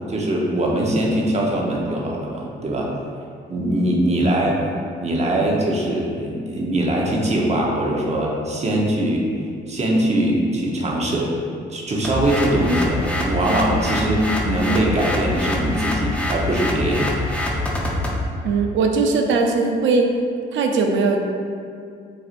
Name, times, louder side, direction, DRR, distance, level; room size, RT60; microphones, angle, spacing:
voice 1, 0.1-2.9 3.5-4.6 5.0-9.3 9.7-11.3 11.7-17.1, right 1 dB, 35° right, -2 dB, 0.9 m, -21 dB
sound 1, 12.0-18.2, left 1 dB, 5° left, 0.6 m, -25 dB
voice 2, 18.4-20.1 20.5-21.2, right 4 dB, 75° right, 3 dB, 0.6 m, -19 dB
7.4 x 2.6 x 2.5 m, 2.3 s
cardioid pair, 90°, 20 cm